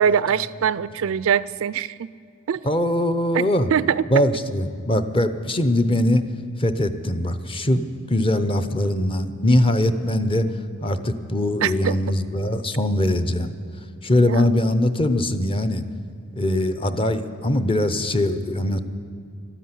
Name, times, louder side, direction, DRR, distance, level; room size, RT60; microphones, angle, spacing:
voice 1, 0.0-2.1 2.5-2.6 3.3-4.0 11.6-12.0 14.2-14.4, right 8 dB, 70° right, 18 dB, 0.4 m, -22 dB
voice 2, 2.6-3.7 4.1-6.2 6.6-10.5 10.8-13.5 14.0-15.8 16.3-18.8, left 1 dB, 25° left, 9 dB, 0.7 m, -21 dB
13.0 x 10.0 x 9.7 m, 2.4 s
head